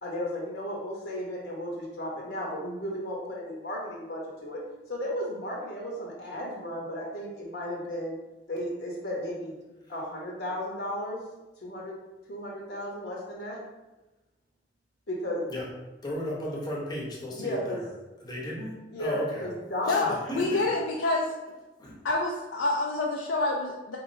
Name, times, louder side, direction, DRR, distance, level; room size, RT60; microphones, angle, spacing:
voice 1, 0.0-4.6 4.9-8.1 8.5-9.6 9.9-11.2 11.6-11.9 12.3-13.6 15.1-15.5 17.3-17.8 18.9-20.1, equal, 65° left, -3 dB, 0.8 m, -34 dB
voice 2, 16.0-17.9 18.2-19.5 19.8-20.6 21.8-22.0, left 1 dB, 20° left, -3 dB, 0.8 m, -35 dB
voice 3, 19.9-21.3 22.0-24.0, left 2 dB, 80° left, -2 dB, 0.4 m, -27 dB
4.6 x 3.1 x 2.6 m, 1.1 s
head